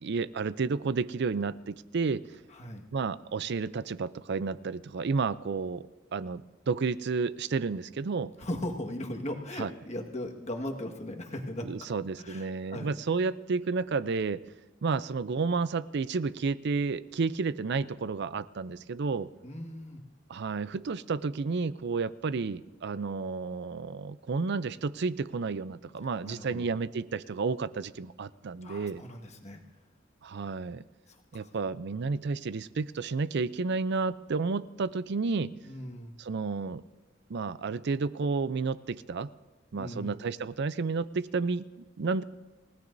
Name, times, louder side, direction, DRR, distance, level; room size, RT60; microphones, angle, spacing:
voice 1, 0.0-2.2 2.9-5.9 6.1-8.3 9.6-9.7 11.6-14.4 14.8-19.3 20.3-29.0 30.2-30.8 31.3-35.5 36.2-36.8 37.3-39.3 39.7-41.7 42.0-42.2, right 4 dB, 60° right, 16 dB, 0.5 m, -31 dB
voice 2, 2.5-2.8 8.4-11.7 12.2-13.0 19.4-20.0 26.2-26.7 28.6-29.6 31.1-31.5 35.6-36.1 39.7-40.2, left 1 dB, 35° left, 2 dB, 1.6 m, -38 dB
29.5 x 16.5 x 2.7 m, 1.2 s
head